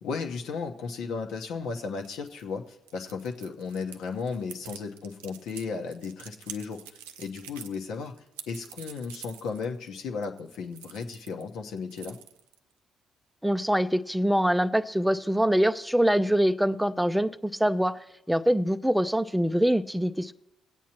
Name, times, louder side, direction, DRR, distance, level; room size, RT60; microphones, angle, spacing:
voice 1, 0.0-6.8 7.2-8.1 8.5-12.2, left 5 dB, 75° left, 1.0 m, -35 dB
sound 1, 2.0-11.4 11.7-12.7, right 10 dB, 90° right, 0.4 m, -46 dB
voice 2, 13.4-18.0 18.3-20.3, equal, 5° right, 0.5 m, -24 dB
20.0 x 8.3 x 3.0 m
hypercardioid pair, 50°, 0 cm